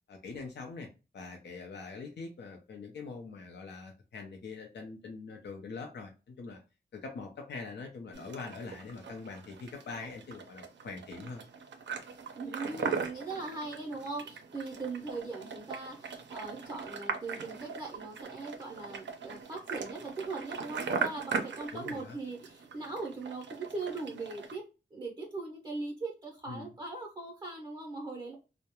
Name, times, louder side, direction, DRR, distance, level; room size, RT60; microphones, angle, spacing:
voice 1, 0.1-0.9 1.1-6.6 6.9-11.4 21.7-22.2 26.5-26.7, left 4 dB, 70° left, 2 dB, 0.5 m, -43 dB
sound 1, 8.1-24.6, right 5 dB, 80° right, 0.4 m, -40 dB
voice 2, 12.3-24.6 24.9-28.4, right 3 dB, 25° right, -1 dB, 0.5 m, -40 dB
2.2 x 2.0 x 2.8 m, 0.31 s
wide cardioid pair, 95°, 18 cm